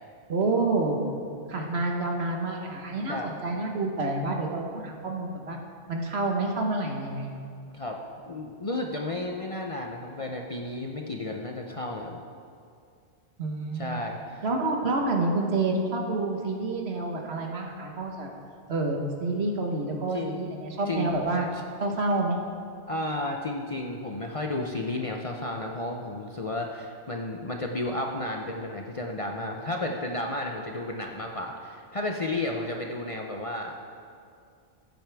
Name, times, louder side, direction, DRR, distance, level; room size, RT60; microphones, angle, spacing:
voice 1, 0.3-1.0 1.5-5.6 5.9-7.3 13.4-14.0 14.4-18.3 18.7-21.5 21.8-22.4, right 2 dB, 65° right, 1 dB, 1.4 m, -28 dB
voice 2, 8.3-12.2 13.7-14.4 20.1-20.5 20.9-21.1 22.9-33.9, left 2 dB, 35° left, 1 dB, 0.6 m, -32 dB
15.5 x 8.9 x 3.4 m, 2.3 s
omnidirectional pair, 1.2 m